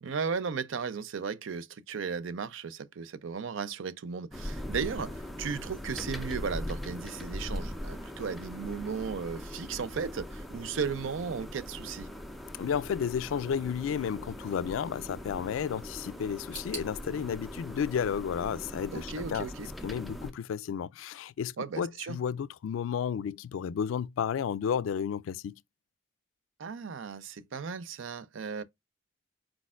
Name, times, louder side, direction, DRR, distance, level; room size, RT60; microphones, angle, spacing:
voice 1, 0.0-12.1 18.9-19.7 21.6-22.2 26.6-28.6, right 5 dB, 80° right, 0.5 m, -35 dB
sound 1, 4.3-20.3, left 1 dB, ahead, 0.5 m, -41 dB
voice 2, 12.6-19.5 19.8-25.6, left 7 dB, 90° left, 0.3 m, -32 dB
sound 2, 16.5-19.4 19.6-20.5 20.7-20.8 21.7-21.8, right 2 dB, 45° right, 2.1 m, -48 dB
4.5 x 4.1 x 2.3 m
head